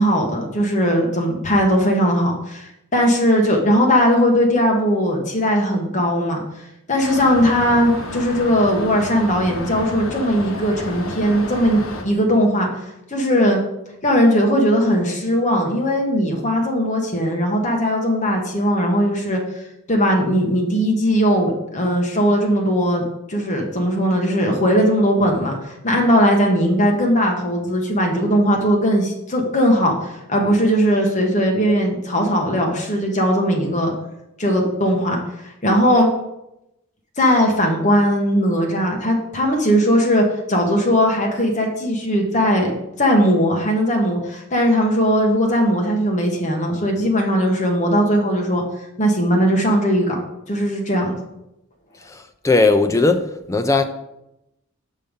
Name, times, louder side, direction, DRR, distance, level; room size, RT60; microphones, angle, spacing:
voice 1, 0.0-6.4 6.9-12.7 13.1-13.6 14.0-19.4 19.9-25.5 25.8-33.9 34.4-36.1 37.2-42.7 43.0-48.6 49.0-50.2 50.5-51.2, equal, 35° left, 1.3 m, -18 dB
sound 1, 7.0-12.0, left 1 dB, 75° left, 1.1 m, -31 dB
voice 2, 52.4-53.8, left 3 dB, 15° left, 0.4 m, -17 dB
6.8 x 5.4 x 5.2 m
head